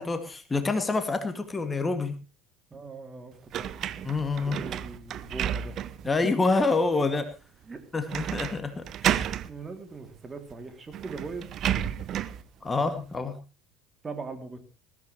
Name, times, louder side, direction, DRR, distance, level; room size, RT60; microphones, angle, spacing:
voice 1, 0.0-2.1 4.0-4.6 6.1-7.3 7.9-9.3 12.6-13.4, left 3 dB, 20° left, 8 dB, 2.1 m, -27 dB
voice 2, 2.7-3.7 4.4-5.8 6.0-6.1 7.6-7.8 8.1-8.4 9.4-11.5 14.0-14.6, right 3 dB, 25° right, 7 dB, 2.7 m, -40 dB
sound 1, 3.5-6.1 6.6-6.7 8.1-8.6 8.8-9.5 10.5-10.6 10.9-12.4, right 10 dB, 45° right, 0.8 m, -31 dB
20.5 x 14.5 x 3.1 m, 0.31 s
figure-of-eight pair, 65°, 0 cm